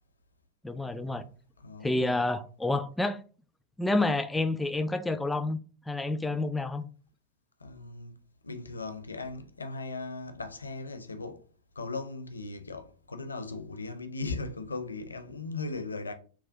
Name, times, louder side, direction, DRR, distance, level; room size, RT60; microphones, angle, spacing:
voice 1, 0.6-1.2 1.8-3.2 3.8-5.6 5.9-6.8, left 2 dB, 5° left, 0.3 m, -29 dB
voice 2, 1.6-2.2 7.6-11.5 11.8-16.1, left 3 dB, 75° left, 0.5 m, -38 dB
5.8 x 2.2 x 2.6 m
figure-of-eight pair, 90°, 0 cm